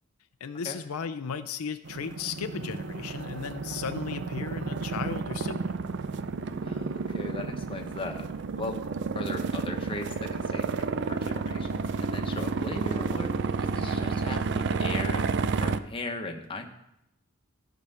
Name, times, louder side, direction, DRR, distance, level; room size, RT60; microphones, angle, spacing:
voice 1, 0.4-5.8, left 6 dB, 85° left, 10 dB, 0.5 m, -35 dB
sound 1, 1.8-15.8, right 4 dB, 55° right, 0.4 m, -31 dB
voice 2, 6.6-8.3 8.6-8.8 9.1-13.3 13.6-15.3 15.6-16.7, left 2 dB, 25° left, 3 dB, 1.0 m, -38 dB
13.5 x 5.0 x 5.6 m, 0.83 s
head